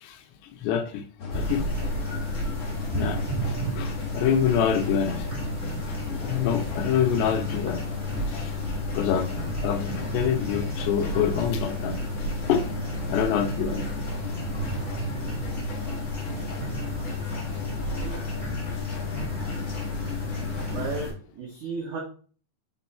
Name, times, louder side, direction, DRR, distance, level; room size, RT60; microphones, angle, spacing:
voice 1, 0.6-1.0 1.3-1.7 2.9-3.2 3.7-5.2 6.2-7.8 8.3-8.5 8.9-9.3 9.6-12.0 12.5-12.6 13.1-13.8, left 8 dB, 80° left, 6 dB, 2.8 m, -25 dB
sound 1, 1.2-21.0, left 6 dB, 50° left, 2.2 m, -33 dB
sound 2, 1.3-21.1, right 3 dB, 15° left, 2.1 m, -34 dB
voice 2, 20.7-22.0, right 4 dB, 85° right, 0 dB, 1.7 m, -34 dB
6.7 x 4.5 x 4.2 m, 0.42 s
omnidirectional pair, 5.2 m